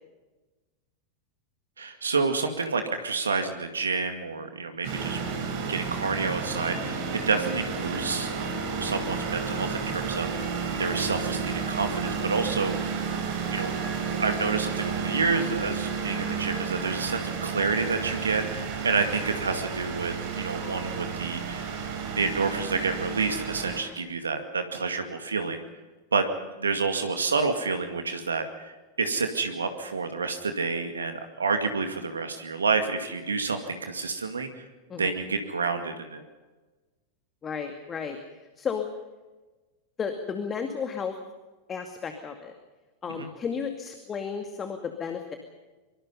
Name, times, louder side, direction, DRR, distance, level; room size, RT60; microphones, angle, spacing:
voice 1, 1.8-5.2 5.7-8.5 8.8-21.8 22.1-25.6 26.1-26.3 26.6-34.7 34.9-36.2 43.1-43.3, right 4 dB, 75° right, 7 dB, 2.2 m, -29 dB
sound 1, 4.8-23.8, right 5 dB, 45° right, 5.3 m, -32 dB
voice 2, 37.4-38.2 38.6-38.9 40.0-41.1 41.7-42.6 43.0-45.4, left 6 dB, 20° left, 6 dB, 2.3 m, -33 dB
25.0 x 24.0 x 5.6 m, 1.2 s
figure-of-eight pair, 90°, 0 cm